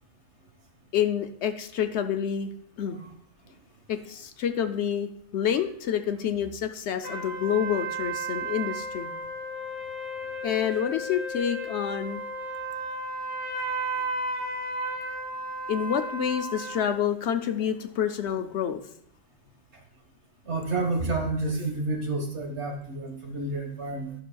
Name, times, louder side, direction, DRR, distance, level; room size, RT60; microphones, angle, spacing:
voice 1, 0.9-2.5 2.8-3.0 3.9-9.1 10.4-12.2 15.7-18.8, left 9 dB, 65° left, 8 dB, 0.8 m, -28 dB
sound 1, 7.0-16.9, right 2 dB, 25° right, 2.1 m, -34 dB
voice 2, 20.4-24.1, right 2 dB, 60° right, 2 dB, 1.7 m, -30 dB
12.5 x 6.1 x 2.3 m, 0.68 s
omnidirectional pair, 1.3 m